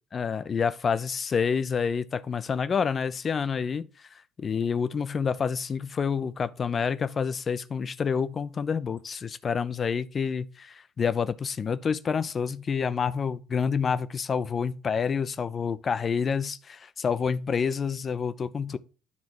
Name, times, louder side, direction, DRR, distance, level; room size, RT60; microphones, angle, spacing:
voice 1, 0.1-16.6 17.0-18.8, left 6 dB, 35° left, 0.5 m, -28 dB
9.7 x 3.5 x 6.2 m
figure-of-eight pair, 50°, 0 cm